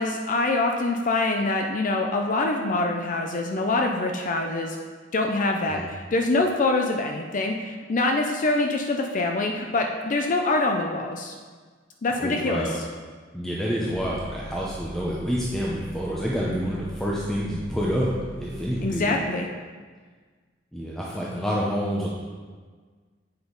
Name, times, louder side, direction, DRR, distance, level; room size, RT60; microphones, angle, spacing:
voice 1, 0.0-4.8 5.1-11.3 12.0-12.7 18.8-19.5, left 2 dB, 45° left, 3 dB, 0.5 m, -25 dB
voice 2, 12.2-12.8 13.3-18.1 18.4-19.2 20.7-22.1, equal, ahead, -5 dB, 0.7 m, -28 dB
sound 1, 13.9-18.9, left 1 dB, 50° right, 1.5 m, -41 dB
8.1 x 5.2 x 3.9 m, 1.5 s
head